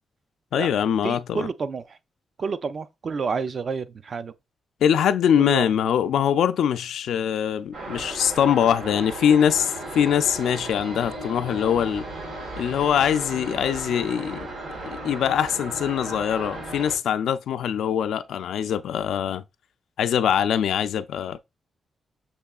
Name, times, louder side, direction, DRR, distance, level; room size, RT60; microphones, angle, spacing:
voice 1, 0.5-1.5 4.8-12.1 12.6-14.4 14.8-19.4 20.0-21.4, left 9 dB, 90° left, 0.3 m, -23 dB
voice 2, 1.0-2.0 2.4-4.3 5.4-5.7, right 5 dB, 40° right, 0.3 m, -29 dB
sound 1, 7.7-17.0, right 2 dB, 80° right, 2.6 m, -35 dB
6.7 x 3.0 x 2.3 m
wide cardioid pair, 175°, 0 cm